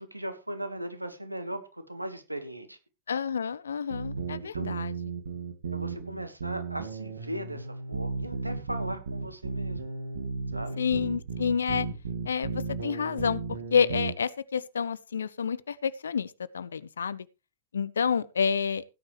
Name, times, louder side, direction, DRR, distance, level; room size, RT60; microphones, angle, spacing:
voice 1, 0.0-2.8 4.4-4.8 5.7-9.9 10.5-10.8, right 1 dB, 85° right, 1.6 m, -38 dB
voice 2, 3.1-4.9 10.8-11.9 12.2-17.3 17.7-18.8, left 6 dB, 70° left, 0.6 m, -29 dB
sound 1, 3.9-14.1, right 4 dB, 70° right, 2.0 m, -35 dB
16.5 x 9.7 x 3.2 m
figure-of-eight pair, 90°, 0 cm